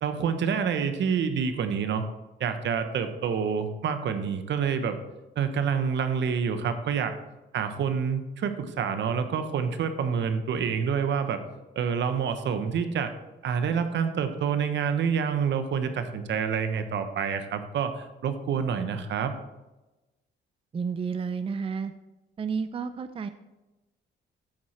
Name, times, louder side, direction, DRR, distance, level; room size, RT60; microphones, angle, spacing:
voice 1, 0.0-2.1 2.4-5.0 5.4-7.1 7.5-11.4 11.8-13.1 13.4-19.3, right 6 dB, 65° right, 9 dB, 1.0 m, -27 dB
voice 2, 20.7-21.9 22.4-23.3, right 5 dB, 30° right, 11 dB, 0.5 m, -31 dB
13.5 x 4.8 x 4.3 m, 1.1 s
cardioid pair, 90°, 20 cm